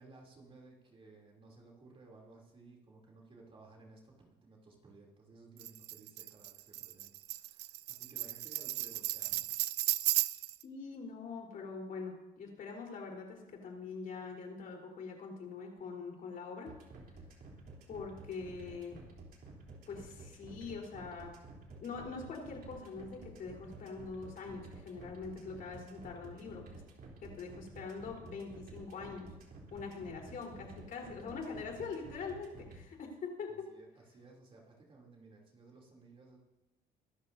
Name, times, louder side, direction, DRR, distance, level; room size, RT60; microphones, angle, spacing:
voice 1, 0.0-9.5 9.8-10.0 33.5-36.4, right 3 dB, 35° right, -2 dB, 3.2 m, -58 dB
Tambourine, 5.6-10.6, right 17 dB, 80° right, 0.5 m, -35 dB
voice 2, 10.6-16.7 17.9-19.0 19.9-21.3 21.8-26.6 27.2-29.3 29.7-33.7, left 4 dB, 55° left, 0 dB, 4.1 m, -43 dB
sound 1, 16.7-32.8, right 3 dB, 60° right, 3.5 m, -51 dB
23.5 x 12.5 x 2.8 m, 1.0 s
cardioid pair, 110°, 17 cm